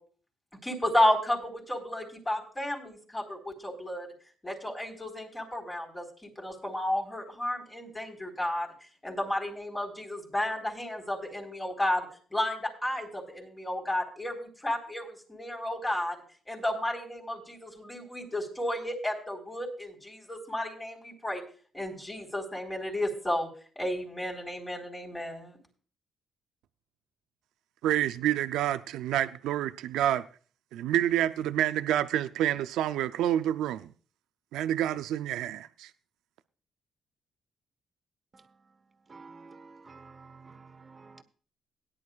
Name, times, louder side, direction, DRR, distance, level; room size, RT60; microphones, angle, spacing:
voice 1, 0.6-4.1 4.4-8.7 9.0-16.2 16.5-21.4 21.7-23.5 23.8-25.6, left 1 dB, 15° left, 4.2 m, -32 dB
voice 2, 27.8-30.2 30.7-33.9 34.5-35.9, right 12 dB, 90° right, 0.4 m, -28 dB
voice 3, 39.1-41.2, right 4 dB, 35° right, 1.3 m, -50 dB
17.5 x 10.5 x 2.4 m
cardioid pair, 90°, 0 cm